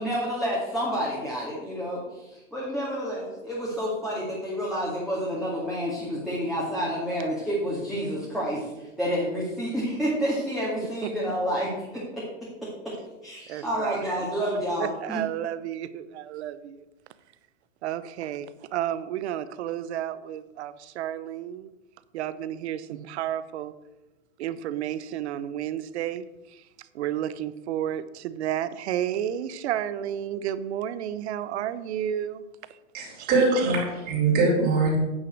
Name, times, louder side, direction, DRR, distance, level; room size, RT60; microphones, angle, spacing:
voice 1, 0.0-12.0 13.2-15.2, equal, ahead, 2.1 m, -29 dB
voice 2, 13.5-14.0 14.8-16.8 17.8-21.7 22.1-23.7 24.4-26.6 26.9-32.4 33.2-33.7, right 11 dB, 60° right, 0.8 m, -32 dB
voice 3, 32.9-35.0, right 3 dB, 25° right, 3.9 m, -22 dB
9.4 x 5.9 x 6.4 m
hypercardioid pair, 140°, 37 cm